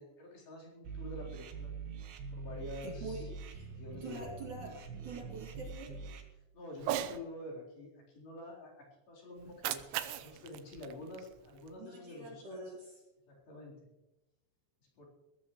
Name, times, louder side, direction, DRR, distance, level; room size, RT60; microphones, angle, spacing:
voice 1, 0.0-1.7 2.3-3.3 3.7-4.3 6.5-12.7 13.3-13.9 15.0-15.1, left 1 dB, 50° left, -4 dB, 5.7 m, -48 dB
sound 1, 0.8-6.2, right 4 dB, 60° right, 3.3 m, -44 dB
voice 2, 2.8-3.7 4.0-4.7 5.0-6.0 11.8-12.9, right 3 dB, 45° right, -2 dB, 3.4 m, -45 dB
Cat, 6.8-7.2 9.4-11.8, right 12 dB, 85° right, 3.4 m, -39 dB
21.0 x 16.5 x 3.2 m, 0.99 s
omnidirectional pair, 5.6 m